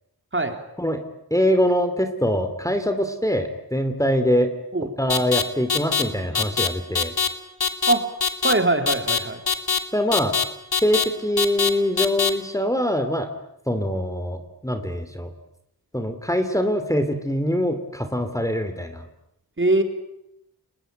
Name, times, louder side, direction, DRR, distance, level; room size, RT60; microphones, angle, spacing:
voice 1, 1.3-4.5 5.0-7.1 9.9-10.3 10.8-13.3 13.7-15.3 15.9-19.0, equal, 10° left, 8 dB, 2.8 m, -23 dB
sound 1, 5.1-5.4 5.7-6.0 6.3-6.7 6.9-7.3 7.6-7.9 8.2-8.5 8.9-9.2 9.5-9.8 10.1-10.4 10.7-11.0 11.4-11.7 12.0-12.3, left 6 dB, 70° left, 3.2 m, -21 dB
voice 2, 8.4-9.4 19.6-19.8, right 2 dB, 30° right, 6 dB, 3.8 m, -21 dB
29.5 x 22.0 x 9.0 m, 0.80 s
wide cardioid pair, 85°, 39 cm